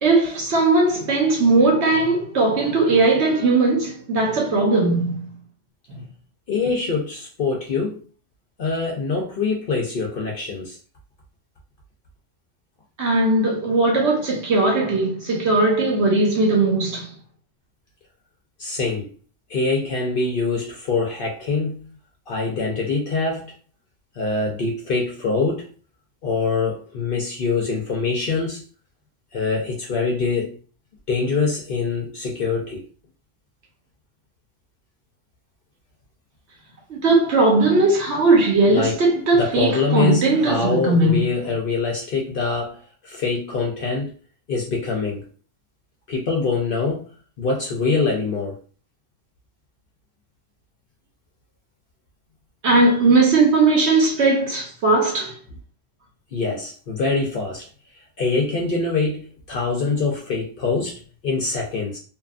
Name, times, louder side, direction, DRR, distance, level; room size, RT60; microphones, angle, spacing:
voice 1, 0.0-5.3 13.0-17.0 36.9-41.2 52.6-55.3, right 3 dB, 60° right, 1.1 m, -18 dB
voice 2, 6.5-8.0 8.6-10.8 18.6-19.1 19.5-21.9 22.3-23.5 24.2-25.7 26.2-28.6 29.3-30.6 31.1-32.8 38.7-39.1 39.3-44.1 44.5-45.3 46.1-47.0 47.4-48.6 56.3-57.6 58.2-62.0, left 4 dB, 55° left, 0.6 m, -24 dB
2.8 x 2.3 x 2.4 m
omnidirectional pair, 1.3 m